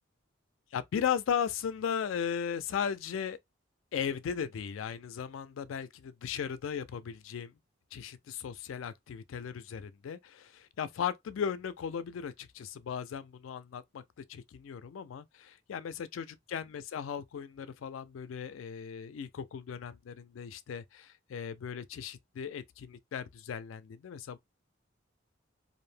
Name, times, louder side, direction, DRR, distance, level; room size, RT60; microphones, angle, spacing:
voice 1, 0.7-3.4 3.9-7.5 7.9-24.4, left 7 dB, 85° left, 0.3 m, -37 dB
2.5 x 2.0 x 3.2 m
head